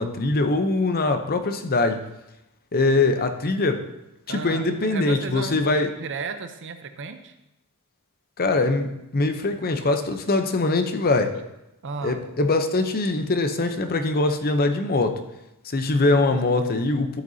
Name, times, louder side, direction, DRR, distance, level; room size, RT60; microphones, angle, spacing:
voice 1, 0.0-2.0 2.7-3.8 4.3-5.9 8.4-11.3 12.0-15.2 15.6-17.2, left 2 dB, 40° left, 7 dB, 0.7 m, -22 dB
voice 2, 4.3-5.7 6.0-7.3 11.8-12.2 16.1-16.7, right 4 dB, 55° right, 9 dB, 0.7 m, -34 dB
13.0 x 7.8 x 2.8 m, 0.90 s
head